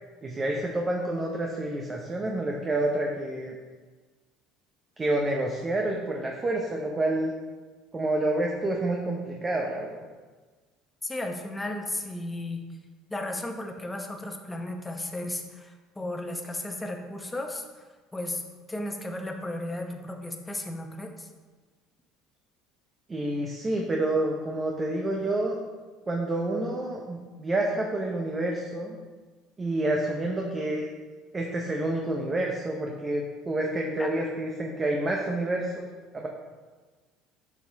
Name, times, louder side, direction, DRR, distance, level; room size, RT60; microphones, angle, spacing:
voice 1, 0.2-3.6 5.0-7.3 7.9-10.0 23.1-25.6 26.1-29.0 29.6-30.9 31.3-35.9 36.1-36.3, right 1 dB, 25° right, 0 dB, 0.9 m, -28 dB
voice 2, 11.0-12.7 13.1-17.7 18.1-18.4 18.7-21.3 34.0-34.1, left 1 dB, 15° left, 4 dB, 0.9 m, -34 dB
6.8 x 4.9 x 3.5 m, 1.4 s
supercardioid pair, 85°, 0 cm